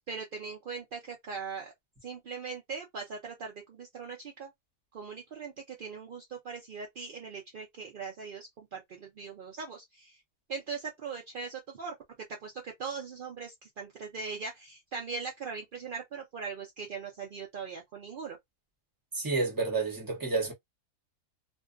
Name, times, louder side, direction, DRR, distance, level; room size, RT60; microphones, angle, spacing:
voice 1, 0.1-1.7 2.0-4.5 4.9-10.2 10.5-11.9 12.3-18.4, right 5 dB, 65° right, 0.5 m, -40 dB
voice 2, 19.1-20.5, right 3 dB, 15° right, 0.8 m, -30 dB
2.6 x 2.3 x 2.4 m
omnidirectional pair, 1.6 m